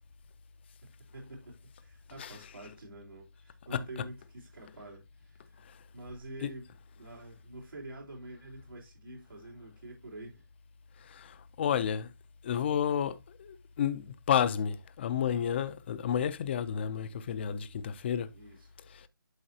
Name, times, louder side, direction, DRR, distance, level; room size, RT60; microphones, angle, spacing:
voice 1, 0.8-5.6 5.9-10.5 18.3-18.7, right 1 dB, 85° right, 3.9 m, -47 dB
voice 2, 11.0-12.1 12.4-18.3 18.9-19.1, left 8 dB, 30° left, 0.7 m, -31 dB
11.5 x 4.6 x 2.8 m
figure-of-eight pair, 160°, 11 cm